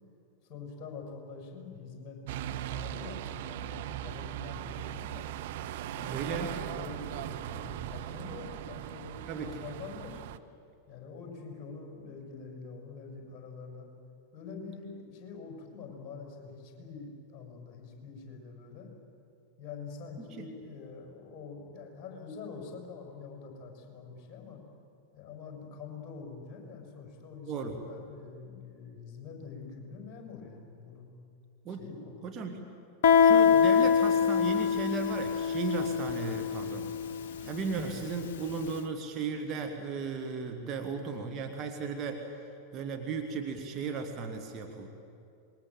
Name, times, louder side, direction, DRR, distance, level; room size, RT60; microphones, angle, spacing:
voice 1, 0.5-5.3 6.0-10.2 10.9-13.9 14.3-18.9 19.6-24.6 25.1-31.1 31.7-32.2, left 5 dB, 30° left, 1 dB, 6.7 m, -45 dB
sound 1, 2.3-10.4, right 12 dB, 55° right, 0.8 m, -39 dB
voice 2, 6.1-6.5 9.3-9.6 20.2-20.4 27.5-27.9 31.6-31.8 32.2-32.6 33.2-37.0 37.4-42.3 42.7-44.9, right 5 dB, 30° right, 4 dB, 2.2 m, -36 dB
Guitar, 33.0-38.5, left 7 dB, 55° left, 0.9 m, -25 dB
26.5 x 22.0 x 7.7 m, 2.5 s
figure-of-eight pair, 90°, 0 cm